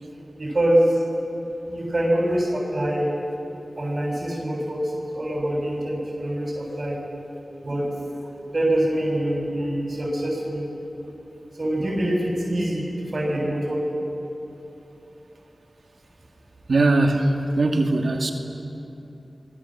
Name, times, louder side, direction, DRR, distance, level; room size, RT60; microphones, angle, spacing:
voice 1, 0.4-1.0 1.7-3.1 3.8-7.0 7.6-7.9 8.5-10.6 11.6-13.8, right 1 dB, 50° right, -3 dB, 7.0 m, -24 dB
voice 2, 16.7-18.3, right 2 dB, 75° right, 3 dB, 2.3 m, -20 dB
29.0 x 22.5 x 7.6 m, 2.9 s
cardioid pair, 45°, 0 cm